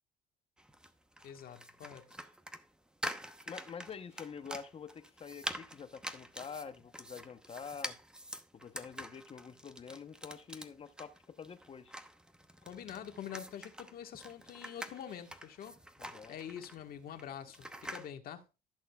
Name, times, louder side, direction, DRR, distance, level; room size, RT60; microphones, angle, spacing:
sound 1, 0.6-18.1, equal, 5° right, 0.9 m, -46 dB
voice 1, 1.2-2.2 12.6-15.8 16.3-18.4, left 9 dB, 60° left, 1.5 m, -46 dB
voice 2, 3.5-8.0 8.5-11.9 16.0-16.3, left 6 dB, 35° left, 0.9 m, -47 dB
15.0 x 6.4 x 2.3 m
cardioid pair, 110°, 17 cm